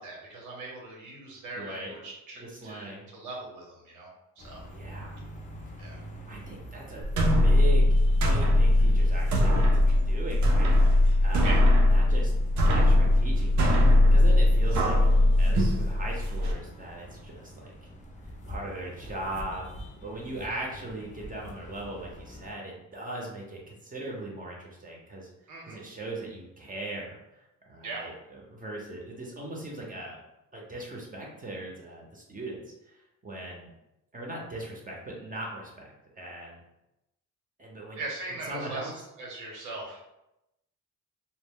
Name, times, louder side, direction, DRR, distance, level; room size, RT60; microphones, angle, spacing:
voice 1, 0.0-4.1 4.4-4.6 5.8-6.0 11.4-11.6 20.4-20.6 25.5-25.8 27.8-28.1 38.0-38.9 39.2-40.0, right 2 dB, 90° right, -2 dB, 1.0 m, -40 dB
voice 2, 1.6-1.9 2.4-3.0 4.7-5.2 6.3-8.0 8.3-10.7 11.2-11.6 11.9-13.7 14.1-15.0 15.4-17.7 18.5-19.7 20.0-25.3 25.6-30.2 30.5-33.0 33.2-33.7 34.1-35.9 36.2-36.6 37.6-38.0 38.4-38.9, right 2 dB, 30° right, -2 dB, 0.6 m, -39 dB
sound 1, 4.4-22.5, equal, 25° left, 0.5 m, -46 dB
sound 2, 7.0-16.5, left 1 dB, 65° right, 0.5 m, -21 dB
2.1 x 2.1 x 3.5 m, 0.89 s
cardioid pair, 90°, 30 cm